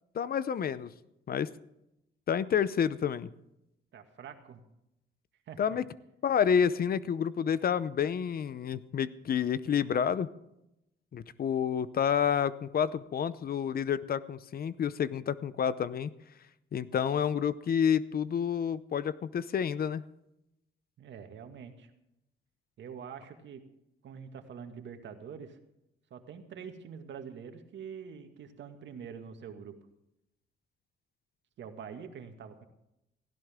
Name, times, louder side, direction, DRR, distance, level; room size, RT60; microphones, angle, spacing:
voice 1, 0.1-0.9 1.3-1.5 2.3-3.3 5.6-5.8 6.2-10.3 11.1-16.1 16.7-20.0, left 8 dB, 50° left, 17 dB, 0.7 m, -29 dB
voice 2, 3.9-4.6 5.5-5.6 21.0-21.9 22.8-23.7 24.0-25.6 26.1-29.8 31.6-32.6, right 7 dB, 65° right, 6 dB, 2.1 m, -45 dB
17.5 x 16.0 x 3.7 m, 0.86 s
cardioid pair, 90°, 20 cm